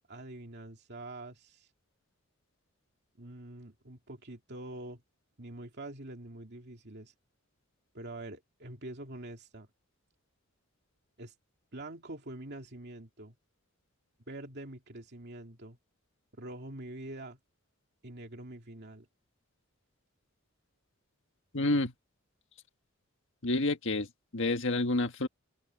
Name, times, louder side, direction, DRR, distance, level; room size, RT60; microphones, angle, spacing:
voice 1, 0.1-1.7 3.2-5.0 5.4-7.1 7.9-9.7 11.2-11.3 11.7-13.3 14.3-15.8 16.4-17.4 18.0-19.1, right 1 dB, 55° right, 2.6 m, -45 dB
voice 2, 21.5-21.9 23.4-24.1 24.3-25.3, left 2 dB, 65° left, 1.6 m, -28 dB
open air
head